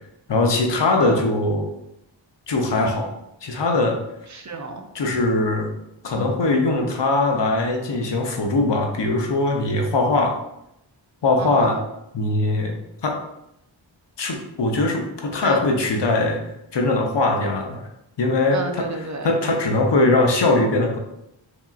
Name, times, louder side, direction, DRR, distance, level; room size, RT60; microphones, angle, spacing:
voice 1, 0.3-1.7 2.5-3.1 3.4-4.0 4.9-5.7 6.0-10.4 11.2-11.8 12.1-12.7 13.0-13.2 14.2-16.4 16.7-17.8 18.2-18.9 19.2-21.0, left 2 dB, 60° left, 2 dB, 0.8 m, -21 dB
voice 2, 4.3-5.2 11.4-11.8 15.4-15.6 18.5-19.3, right 3 dB, 40° right, 4 dB, 0.5 m, -31 dB
4.7 x 2.7 x 2.5 m, 0.83 s
cardioid pair, 40°, 47 cm